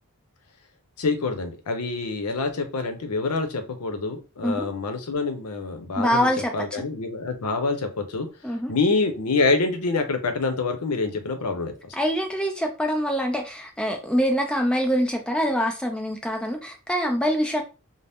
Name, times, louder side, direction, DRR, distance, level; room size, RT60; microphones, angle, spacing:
voice 1, 1.0-8.3 8.7-12.0, left 3 dB, 85° left, 0.6 m, -26 dB
voice 2, 6.0-6.8 8.4-8.7 12.0-17.6, equal, 5° left, 0.3 m, -25 dB
2.7 x 2.0 x 3.3 m
head